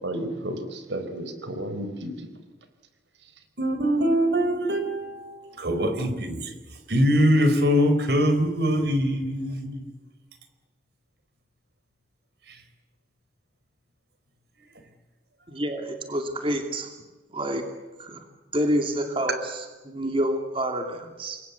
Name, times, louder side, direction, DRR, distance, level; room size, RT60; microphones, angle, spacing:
voice 1, 0.0-2.3 3.2-3.3, right 1 dB, 90° right, 4.5 m, -33 dB
voice 2, 3.6-6.4 6.9-9.8, equal, 65° right, 4.4 m, -23 dB
voice 3, 15.5-16.9 17.3-17.6 18.0-18.2 18.5-21.4, right 1 dB, 30° right, 2.7 m, -28 dB
28.5 x 22.5 x 8.3 m
head